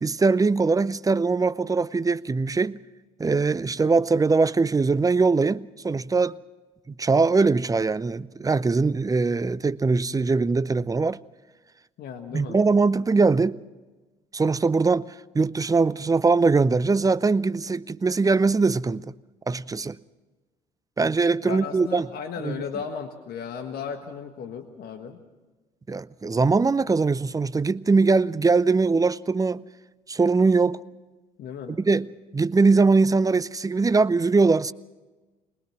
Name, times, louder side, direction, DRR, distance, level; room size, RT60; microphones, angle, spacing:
voice 1, 0.0-2.8 3.2-6.4 7.0-11.2 12.3-13.6 14.3-19.0 19.5-20.0 21.0-22.1 22.4-22.6 25.9-29.6 30.1-30.8 31.7-34.7, right 4 dB, 20° right, 0.6 m, -21 dB
voice 2, 12.0-12.6 21.4-25.2 31.4-31.8, left 7 dB, 60° left, 1.6 m, -35 dB
21.5 x 20.5 x 6.1 m
hypercardioid pair, 55°, 18 cm